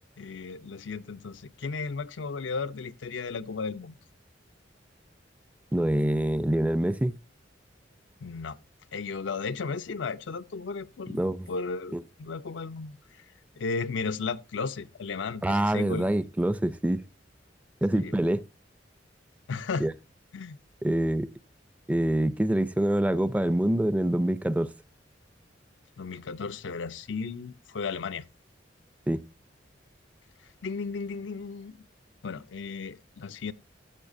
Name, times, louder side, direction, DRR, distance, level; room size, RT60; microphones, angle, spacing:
voice 1, 0.2-3.9 8.2-8.6 8.9-13.0 13.6-16.1 18.0-18.2 19.5-19.9 20.3-20.6 26.0-28.2 30.6-31.9 32.2-33.5, left 4 dB, 80° left, 0.5 m, -35 dB
voice 2, 5.7-7.1 11.1-11.5 11.9-12.0 15.4-17.0 17.8-18.4 19.8-19.9 20.8-21.3 21.9-24.7 29.1-29.2, right 1 dB, 10° right, 0.4 m, -25 dB
13.5 x 7.2 x 2.6 m
head